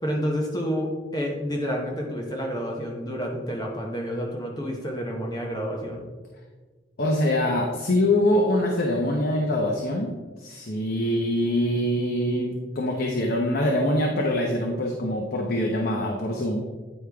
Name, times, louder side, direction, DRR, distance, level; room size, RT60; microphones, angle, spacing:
voice 1, 0.0-6.1, equal, 20° left, 0 dB, 0.9 m, -29 dB
voice 2, 7.0-10.1 10.4-16.6, left 1 dB, 55° left, 0 dB, 0.8 m, -24 dB
9.1 x 4.8 x 3.4 m, 1.3 s
head